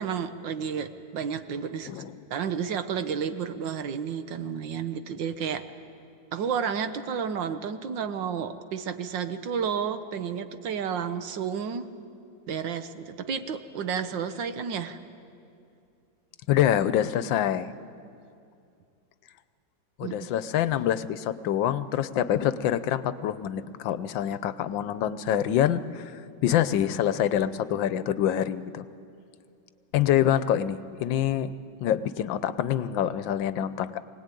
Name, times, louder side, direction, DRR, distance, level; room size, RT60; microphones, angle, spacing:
voice 1, 0.0-2.0 2.3-5.6 6.3-11.9 12.5-15.0 20.0-20.3, right 7 dB, 75° right, 10 dB, 1.7 m, -31 dB
voice 2, 16.5-17.7 20.0-26.1 26.4-28.8 29.9-31.5 31.8-34.0, left 10 dB, 80° left, 14 dB, 1.4 m, -26 dB
23.5 x 19.0 x 9.1 m, 2.5 s
omnidirectional pair, 2.1 m